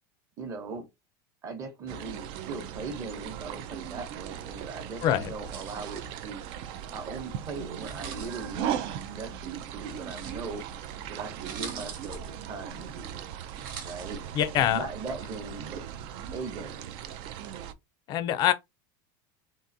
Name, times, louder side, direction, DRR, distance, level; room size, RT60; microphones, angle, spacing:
voice 1, 0.4-0.9 1.4-6.4 6.9-10.6 11.1-13.3 13.8-14.2 14.7-15.8 16.3-17.0, right 4 dB, 30° right, 0.9 m, -39 dB
sound 1, 1.9-17.7, right 9 dB, 50° right, 0.4 m, -38 dB
voice 2, 5.0-5.3 14.3-14.8 18.1-18.5, left 11 dB, 40° left, 0.5 m, -24 dB
sound 2, 5.5-6.1 7.7-8.6 10.0-10.6 11.1-11.2 11.3-12.4 13.5-14.4, right 6 dB, 75° right, 1.1 m, -43 dB
3.7 x 2.5 x 2.6 m
supercardioid pair, 150°, 11 cm